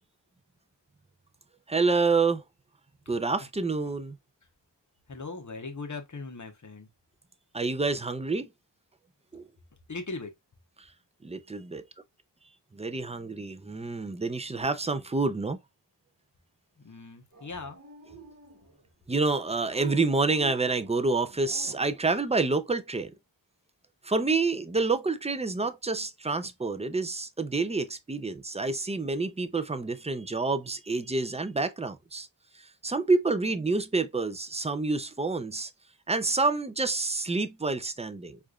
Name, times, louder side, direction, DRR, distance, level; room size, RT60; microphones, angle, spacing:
voice 1, 1.7-2.4 3.1-4.2 7.5-8.5 9.3-9.5 10.8-10.9 11.2-11.8 12.7-15.6 19.1-23.1 24.0-32.3 32.5-35.7 36.1-38.4, right 3 dB, 15° right, 0.4 m, -28 dB
voice 2, 5.1-6.9 9.9-10.3 16.8-17.8, left 3 dB, 40° left, 1.0 m, -39 dB
Dog, 17.3-18.8 19.6-22.0, right 7 dB, 35° right, 1.1 m, -46 dB
4.6 x 2.6 x 2.3 m
wide cardioid pair, 50°, 44 cm